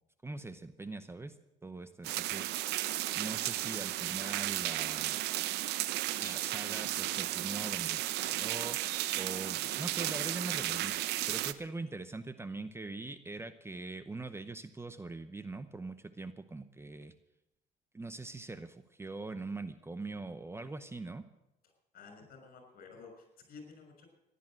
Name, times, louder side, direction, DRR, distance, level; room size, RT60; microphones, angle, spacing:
voice 1, 0.2-1.4 1.6-2.5 3.1-5.2 6.2-17.1 17.9-21.2, right 3 dB, 15° right, 12 dB, 0.7 m, -42 dB
sound 1, 2.0-11.5, right 15 dB, 85° right, 0.7 m, -34 dB
voice 2, 21.9-24.1, left 4 dB, 60° left, 4 dB, 6.0 m, -52 dB
15.0 x 11.0 x 7.6 m, 0.92 s
cardioid pair, 110°, 17 cm